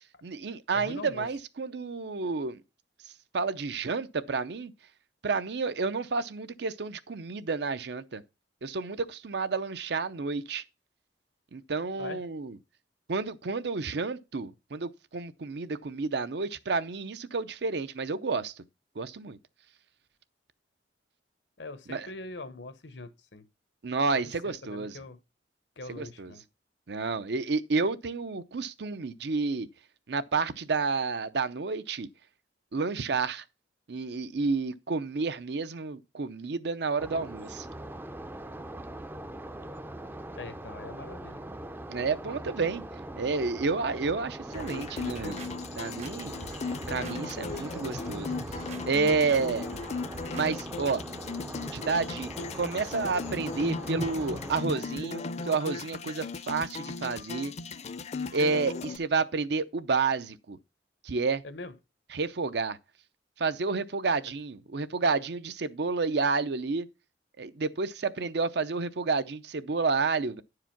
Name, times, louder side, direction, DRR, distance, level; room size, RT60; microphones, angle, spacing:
voice 1, 0.2-2.6 3.3-4.7 5.2-8.2 8.6-10.6 11.5-12.6 13.1-18.5 19.0-19.4 21.9-22.1 23.8-25.0 25.9-26.3 26.9-29.7 30.1-32.1 32.7-33.4 33.9-37.7 41.9-42.8 43.2-46.3 46.9-48.3 48.9-49.7 50.3-51.0 51.7-52.3 52.5-57.5 58.3-60.6 61.0-61.4 62.1-62.8 63.4-66.9 67.4-70.4, right 4 dB, 70° right, 0.6 m, -30 dB
voice 2, 0.7-1.3 12.0-12.2 21.6-23.4 24.1-25.2 25.8-26.4 40.4-41.4 61.4-61.7, left 3 dB, 85° left, 1.0 m, -42 dB
sound 1, 37.0-54.6, right 1 dB, 10° right, 0.4 m, -41 dB
sound 2, 44.5-59.0, left 4 dB, 40° left, 0.5 m, -37 dB
sound 3, 44.5-45.5 46.0-47.2 47.4-47.8 48.3-48.8 49.3-49.4 49.7-50.5 50.8-51.0, right 2 dB, 40° right, 0.8 m, -45 dB
10.0 x 4.9 x 5.8 m
head